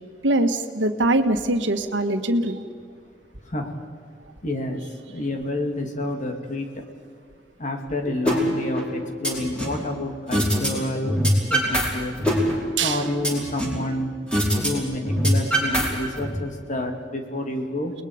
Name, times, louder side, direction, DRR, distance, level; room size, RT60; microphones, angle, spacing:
voice 1, 0.2-2.6 8.1-8.2 12.8-13.0, right 2 dB, 85° right, 7 dB, 1.5 m, -22 dB
voice 2, 4.4-4.8 5.1-6.7 7.6-11.1 11.5-12.1 12.8-14.1 14.6-17.9, left 1 dB, 45° left, 3 dB, 2.7 m, -28 dB
sound 1, 8.3-8.4 8.8-9.8 10.3-10.7 11.0-11.9 12.2-13.8 14.3-14.7 15.0-16.3, right 1 dB, 5° left, 5.2 m, -23 dB
29.5 x 21.0 x 5.1 m, 2.1 s
head